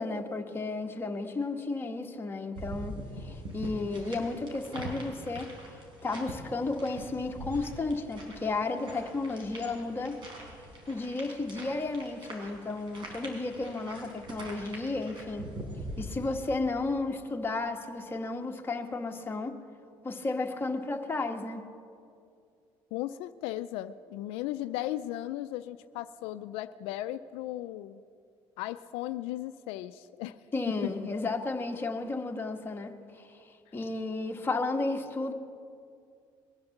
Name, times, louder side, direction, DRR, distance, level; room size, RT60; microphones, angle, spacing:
voice 1, 0.0-5.8 6.0-10.2 10.9-15.5 16.0-19.5 20.0-21.7 30.5-33.5 33.7-35.3, left 3 dB, 25° left, 2 dB, 1.6 m, -33 dB
sound 1, 2.5-16.5, right 1 dB, 60° right, 4.4 m, -43 dB
voice 2, 22.9-28.0 28.6-30.4 30.8-30.9, left 14 dB, 90° left, 11 dB, 0.4 m, -36 dB
21.5 x 8.7 x 7.2 m, 2.4 s
cardioid pair, 95°, 10 cm